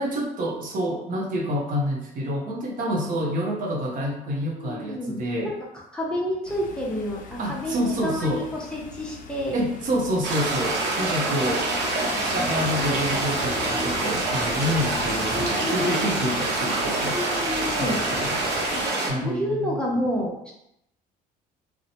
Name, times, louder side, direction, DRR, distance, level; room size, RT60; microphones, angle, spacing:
voice 1, 0.0-5.5 7.4-8.5 9.5-11.7 12.2-17.2 17.8-18.4 19.1-19.8, equal, 55° right, 0 dB, 0.6 m, -28 dB
voice 2, 4.6-5.5 5.9-9.6 11.2-11.4 12.1-12.7 13.5-14.0 15.3-16.1 17.1-18.0 18.7-20.5, left 1 dB, 5° left, -4 dB, 0.6 m, -30 dB
sound 1, 6.5-18.9, left 4 dB, 50° left, 0.4 m, -40 dB
sound 2, 10.2-19.1, right 2 dB, 80° right, 0.8 m, -26 dB
2.7 x 2.1 x 2.7 m, 0.79 s
cardioid pair, 110°, 17 cm